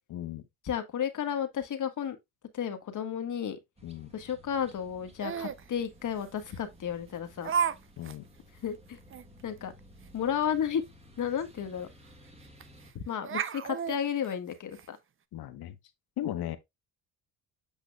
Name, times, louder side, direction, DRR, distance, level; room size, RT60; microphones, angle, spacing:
voice 1, 0.1-0.5 3.8-4.1 8.0-8.3 15.3-15.8 16.2-16.6, left 12 dB, 65° left, 1.1 m, -36 dB
voice 2, 0.6-2.2 2.5-3.6 4.1-7.5 8.6-9.0 9.4-9.7 10.1-10.8 11.2-11.9 12.9-15.0, left 8 dB, 45° left, 1.5 m, -32 dB
sound 1, 3.8-12.9, equal, 15° right, 1.6 m, -56 dB
Laughter, 5.2-5.6 6.5-6.6 7.4-7.8 8.0-8.2 8.6-8.7 9.1-9.2 11.2-11.3 11.6-11.7 12.6-12.9 13.2-14.9, right 7 dB, 30° right, 0.5 m, -32 dB
8.5 x 4.9 x 2.3 m
cardioid pair, 105°, 41 cm